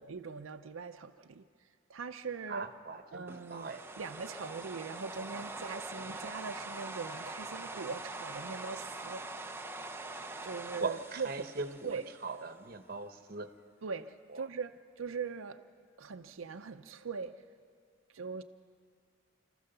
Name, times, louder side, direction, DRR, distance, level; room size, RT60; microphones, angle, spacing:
voice 1, 0.0-1.4 1.9-2.7 3.1-3.7 4.0-9.2 10.4-11.5 11.8-12.1 13.8-15.6 16.0-17.4 18.1-18.4, right 5 dB, 90° right, 0.6 m, -41 dB
voice 2, 2.5-3.2 3.5-3.8 10.8-13.5 14.3-14.4, right 3 dB, 45° right, 1.0 m, -40 dB
sound 1, 3.3-12.5, right 2 dB, 10° right, 0.6 m, -44 dB
27.0 x 14.0 x 6.8 m
head